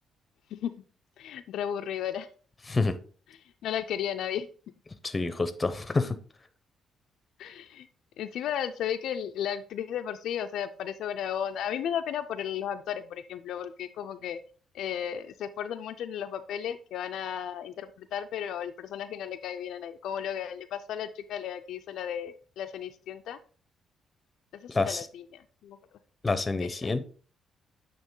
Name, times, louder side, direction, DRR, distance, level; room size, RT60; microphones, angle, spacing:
voice 1, 1.2-2.3 3.6-4.5 7.4-7.9 8.2-14.4 14.7-23.4 24.5-25.8 26.6-26.9, left 9 dB, 80° left, 8 dB, 0.4 m, -34 dB
voice 2, 5.0-6.2 24.7-25.0 26.2-27.0, left 3 dB, 25° left, 12 dB, 0.7 m, -27 dB
8.8 x 3.0 x 3.7 m, 0.40 s
cardioid pair, 90°, 0 cm